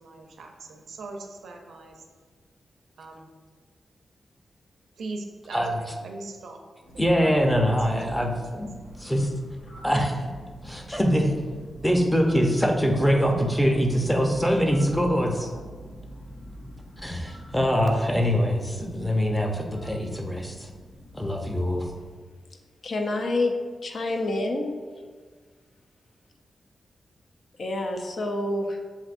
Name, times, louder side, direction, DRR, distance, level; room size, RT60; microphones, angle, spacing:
voice 1, 0.0-2.0 3.0-3.3 5.0-6.6 7.6-8.7, right 2 dB, 85° right, 2 dB, 0.6 m, -41 dB
voice 2, 5.5-5.8 7.0-9.3 9.8-10.3 10.6-11.3 11.8-15.5 17.0-20.7 21.1-21.9, equal, 10° left, 2 dB, 0.7 m, -23 dB
sound 1, 6.8-22.1, equal, 85° left, 1.4 m, -44 dB
voice 3, 22.8-24.7 27.6-28.8, left 2 dB, 60° left, 3 dB, 0.6 m, -27 dB
7.3 x 2.6 x 2.5 m, 1.5 s
cardioid pair, 65°, 0 cm